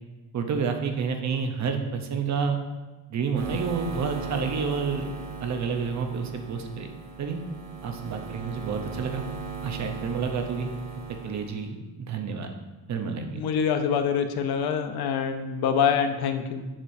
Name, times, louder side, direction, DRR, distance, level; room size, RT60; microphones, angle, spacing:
voice 1, 0.3-2.6 3.1-5.1 5.4-6.9 7.2-7.4 7.8-9.2 9.6-10.7 11.2-12.5 12.9-13.4, right 5 dB, 45° right, 5 dB, 0.7 m, -29 dB
sound 1, 3.3-11.6, right 5 dB, 85° right, 1.4 m, -38 dB
voice 2, 13.4-16.7, left 7 dB, 80° left, 7 dB, 0.7 m, -25 dB
7.3 x 6.6 x 2.6 m, 1.2 s
cardioid pair, 160°, 37 cm